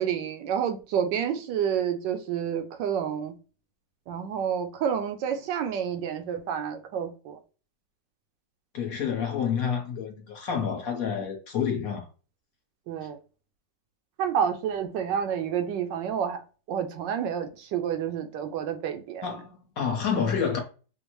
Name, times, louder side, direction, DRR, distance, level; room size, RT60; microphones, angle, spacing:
voice 1, 0.0-3.3 4.1-7.4 12.9-13.2 14.2-16.4 16.7-19.3, right 8 dB, 80° right, 1.2 m, -29 dB
voice 2, 8.7-12.0 19.2-20.6, left 7 dB, 55° left, 1.2 m, -28 dB
5.2 x 2.1 x 3.0 m
omnidirectional pair, 2.0 m